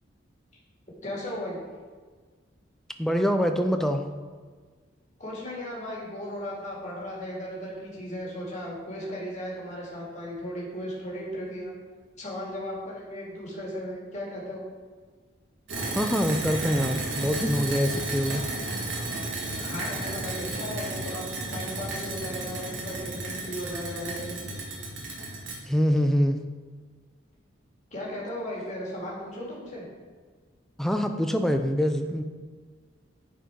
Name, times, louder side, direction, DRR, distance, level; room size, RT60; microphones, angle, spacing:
voice 1, 1.0-1.6 5.2-11.7 12.2-14.6 19.4-21.2 21.5-24.5 27.9-29.8, equal, 35° left, -5 dB, 2.3 m, -36 dB
voice 2, 3.0-4.0 15.9-18.4 25.7-26.4 30.8-32.2, equal, ahead, 6 dB, 0.4 m, -24 dB
sound 1, 15.7-25.6, right 2 dB, 65° right, 1.8 m, -33 dB
10.0 x 4.7 x 4.6 m, 1.5 s
head